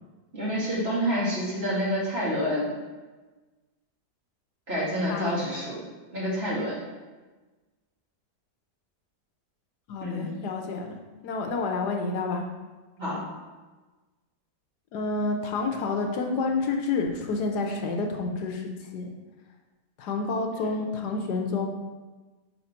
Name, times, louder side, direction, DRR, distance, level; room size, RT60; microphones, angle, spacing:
voice 1, 0.3-2.7 4.7-5.8 6.1-6.7 10.0-10.3 13.0-13.2 20.6-20.7, equal, 40° right, -8 dB, 2.2 m, -28 dB
voice 2, 9.9-11.0 11.2-12.4 14.9-19.1 20.0-21.7, left 3 dB, 80° left, 3 dB, 1.3 m, -29 dB
4.9 x 4.1 x 5.8 m, 1.3 s
omnidirectional pair, 1.8 m